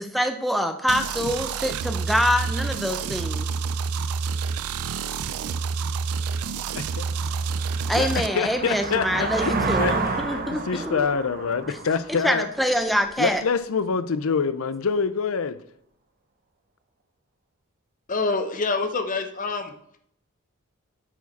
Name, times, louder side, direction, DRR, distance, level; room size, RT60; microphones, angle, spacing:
voice 1, 0.0-3.5 7.9-11.1 12.2-13.4, equal, ahead, 6 dB, 0.5 m, -25 dB
sound 1, 0.9-8.3, right 5 dB, 80° right, 0.4 m, -28 dB
sound 2, 6.0-6.1 6.6-13.1, right 3 dB, 40° right, 0.7 m, -30 dB
voice 2, 6.7-7.1 7.9-9.5 9.8-12.5 13.2-15.6, left 5 dB, 70° left, 13 dB, 0.5 m, -26 dB
voice 3, 18.1-19.7, left 3 dB, 35° left, 7 dB, 0.8 m, -26 dB
8.8 x 4.7 x 4.1 m, 0.70 s
head